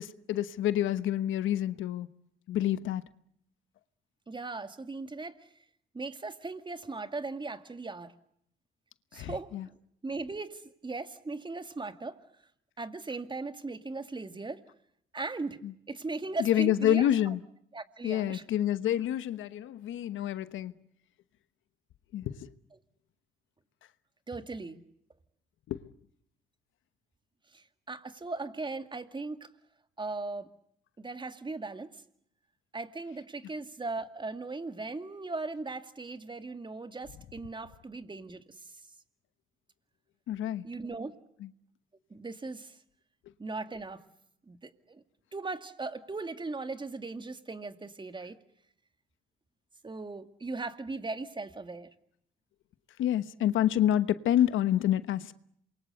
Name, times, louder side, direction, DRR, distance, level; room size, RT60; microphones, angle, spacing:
voice 1, 0.0-2.1 2.5-3.0 9.1-9.7 15.6-15.7 16.4-17.4 18.0-20.8 22.1-22.5 25.7-25.8 40.3-40.7 41.4-41.5 53.0-55.3, left 11 dB, 80° left, 1.1 m, -28 dB
voice 2, 4.3-5.5 5.9-8.1 9.1-9.5 10.0-12.2 12.8-14.6 15.1-15.6 15.9-17.3 17.7-18.4 24.3-24.8 27.5-29.5 30.0-30.5 31.0-31.9 32.7-38.6 40.6-41.1 42.1-42.8 43.4-44.0 44.5-45.0 45.3-48.4 49.8-51.9, right 3 dB, 25° right, 2.2 m, -38 dB
28.0 x 23.0 x 7.9 m
cardioid pair, 90°, 20 cm